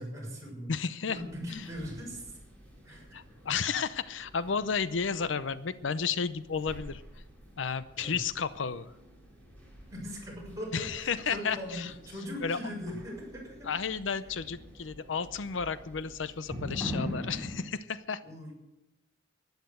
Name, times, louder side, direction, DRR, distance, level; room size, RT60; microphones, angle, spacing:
voice 1, 0.0-0.7 1.1-2.4 2.8-3.2 8.0-8.2 9.9-13.7 18.2-18.5, equal, 15° right, -4 dB, 6.5 m, -40 dB
voice 2, 0.7-1.2 1.5-1.6 3.1-7.0 7.6-8.9 10.7-11.9 12.4-12.6 13.6-18.2, left 6 dB, 90° left, 15 dB, 0.7 m, -32 dB
sound 1, 1.1-17.6, equal, 10° left, 4.3 m, -45 dB
12.0 x 10.5 x 8.1 m, 0.93 s
head